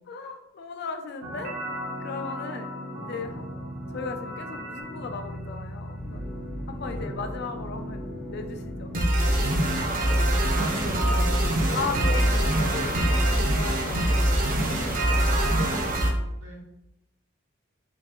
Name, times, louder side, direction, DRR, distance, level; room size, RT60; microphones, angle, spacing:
voice 1, 0.1-1.6 2.0-2.7 3.0-3.4 3.9-6.2 6.7-8.9 11.7-14.1 14.5-15.3, left 4 dB, 55° left, 6 dB, 0.4 m, -36 dB
sound 1, 1.2-16.1, right 1 dB, 45° right, 0.6 m, -26 dB
sound 2, 5.9-14.6, left 1 dB, 5° left, 0.6 m, -41 dB
voice 2, 6.8-7.2 9.9-11.8 15.2-15.9 16.4-16.6, right 1 dB, 80° right, -3 dB, 1.2 m, -39 dB
3.6 x 2.4 x 3.0 m, 0.88 s
head